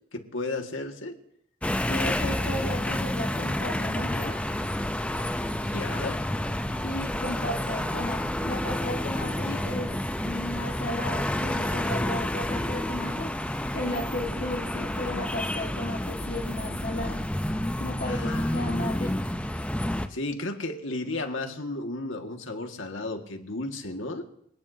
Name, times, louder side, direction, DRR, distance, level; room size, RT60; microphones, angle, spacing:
voice 1, 0.1-1.2 5.7-6.2 18.1-19.0 20.1-24.3, left 2 dB, 85° left, 4 dB, 1.9 m, -34 dB
sound 1, 1.6-20.1, left 1 dB, 5° left, 0.6 m, -29 dB
voice 2, 1.9-4.4 6.8-9.9 10.2-17.2 17.8-19.3, left 1 dB, 45° left, -1 dB, 1.8 m, -34 dB
26.0 x 18.0 x 2.8 m, 0.70 s
head